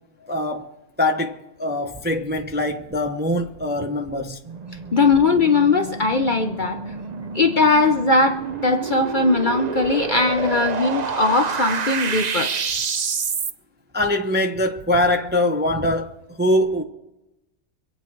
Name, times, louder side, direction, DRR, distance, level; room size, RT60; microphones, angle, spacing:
voice 1, 0.3-0.7 1.0-4.4 13.9-16.1 16.4-16.8, left 1 dB, 10° right, 0.7 m, -22 dB
sound 1, 4.5-13.5, right 5 dB, 50° right, 0.5 m, -28 dB
voice 2, 4.9-6.8 7.3-12.5, left 3 dB, 40° left, 0.8 m, -19 dB
25.0 x 8.6 x 4.5 m
omnidirectional pair, 1.5 m